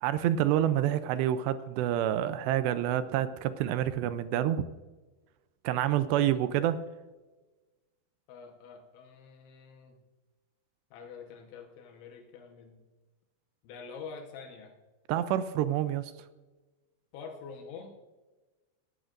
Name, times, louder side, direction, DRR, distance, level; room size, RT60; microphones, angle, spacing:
voice 1, 0.0-4.7 5.6-6.8 15.1-16.1, right 11 dB, 80° right, 12 dB, 2.6 m, -28 dB
voice 2, 8.3-10.0 10.9-12.8 13.6-14.7 17.1-17.9, left 5 dB, 80° left, 3 dB, 3.5 m, -46 dB
19.0 x 14.5 x 2.6 m, 1.2 s
omnidirectional pair, 5.3 m